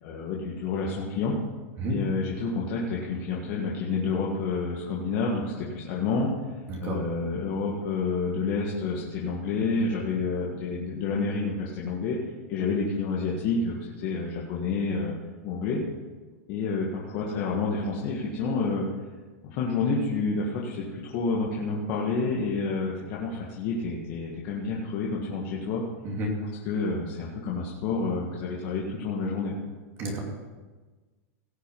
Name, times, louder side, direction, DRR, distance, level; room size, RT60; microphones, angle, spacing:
voice 1, 0.0-1.3 1.9-6.3 6.8-12.2 12.5-15.1 15.4-15.8 16.5-18.9 19.4-25.8 26.7-29.5, left 4 dB, 45° left, -3 dB, 1.8 m, -29 dB
voice 2, 1.8-1.9 6.7-7.0 26.0-26.3 30.0-30.2, right 1 dB, 30° right, -1 dB, 2.8 m, -30 dB
17.5 x 6.6 x 5.4 m, 1.3 s
supercardioid pair, 160°, 8 cm